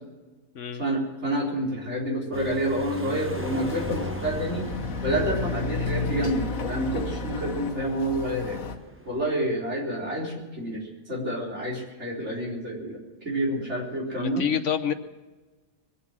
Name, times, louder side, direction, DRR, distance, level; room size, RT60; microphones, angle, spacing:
voice 1, 0.8-4.7 5.0-8.6 9.1-14.5, right 1 dB, 55° right, -3 dB, 4.5 m, -28 dB
sound 1, 2.3-9.3, equal, 10° right, 0.7 m, -40 dB
Chatter / Car passing by / Motorcycle, 3.3-8.8, left 4 dB, 85° left, 1.6 m, -32 dB
voice 2, 14.2-14.9, left 8 dB, 65° left, 10 dB, 1.2 m, -27 dB
22.5 x 8.4 x 7.3 m, 1.3 s
omnidirectional pair, 1.4 m